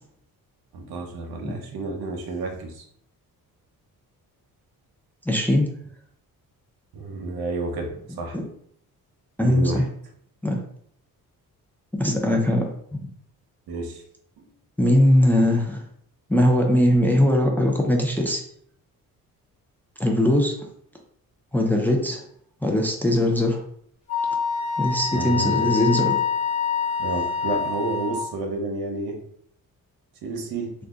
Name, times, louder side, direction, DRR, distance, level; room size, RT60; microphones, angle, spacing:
voice 1, 0.7-2.8 6.9-8.4 9.4-9.8 13.7-14.0 14.4-14.5 25.1-25.6 27.0-29.2 30.2-30.7, right 3 dB, 75° right, 2 dB, 0.8 m, -30 dB
voice 2, 5.3-5.7 8.3-8.4 9.4-9.7 10.4-10.6 12.0-12.7 14.8-15.8 16.3-18.4 20.0-20.6 21.5-22.2 22.6-23.6 24.8-26.2, left 1 dB, 5° left, 0 dB, 0.5 m, -20 dB
Wind instrument woodwind instrument, 24.1-28.3, left 7 dB, 20° left, 1.2 m, -26 dB
2.7 x 2.2 x 3.6 m, 0.66 s
cardioid pair, 90°, 36 cm